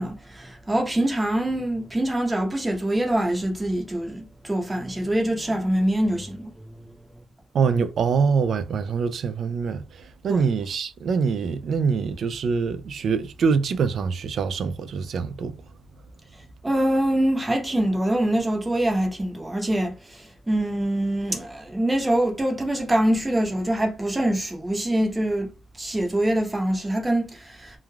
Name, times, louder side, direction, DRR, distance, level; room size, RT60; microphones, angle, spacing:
voice 1, 0.0-6.7 10.3-10.4 16.6-27.8, right 1 dB, 15° right, 0.8 m, -24 dB
voice 2, 7.5-15.6, right 5 dB, 70° right, 0.3 m, -24 dB
3.2 x 2.3 x 2.2 m
cardioid pair, 100°, 0 cm